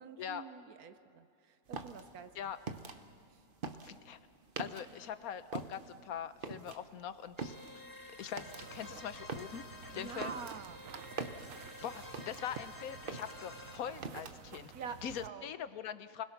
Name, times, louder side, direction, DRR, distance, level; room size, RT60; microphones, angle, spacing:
voice 1, 0.0-2.3 3.3-3.4 9.9-10.8 14.7-15.5, right 6 dB, 80° right, 10 dB, 1.4 m, -46 dB
sound 1, 1.7-5.1 5.4-12.7 13.0-14.6, right 4 dB, 40° right, 1.0 m, -44 dB
voice 2, 3.8-4.2 4.6-7.6 8.2-9.6 9.9-10.4 11.8-14.7 15.0-16.2, left 9 dB, 80° left, 12 dB, 1.3 m, -42 dB
sound 2, 7.4-13.8, left 2 dB, 15° left, 1.9 m, -51 dB
sound 3, 8.5-15.3, right 8 dB, 65° right, 1.1 m, -52 dB
29.5 x 21.0 x 6.0 m, 2.4 s
omnidirectional pair, 1.5 m